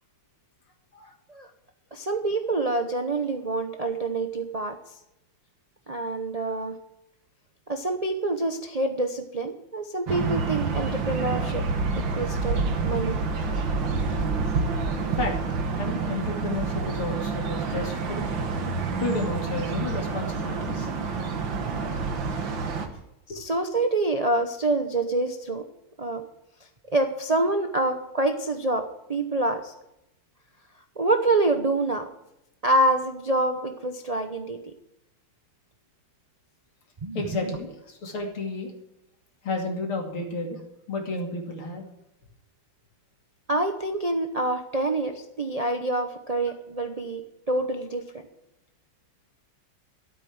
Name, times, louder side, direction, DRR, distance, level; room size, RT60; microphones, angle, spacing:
voice 1, 1.9-4.8 5.9-6.8 7.7-11.6 11.9-13.2 23.3-25.6 26.0-26.3 26.9-29.7 31.0-32.1 32.6-34.6 37.0-37.6 43.5-47.2 47.5-48.1, right 2 dB, 90° right, 5 dB, 0.3 m, -26 dB
sound 1, 10.1-22.9, right 4 dB, 65° right, 2.2 m, -28 dB
voice 2, 15.8-18.2 19.0-20.9 23.3-23.4 37.2-38.7 39.4-40.6 40.9-41.9, left 2 dB, 85° left, 1 dB, 3.5 m, -31 dB
13.0 x 8.4 x 7.9 m, 0.87 s
omnidirectional pair, 2.3 m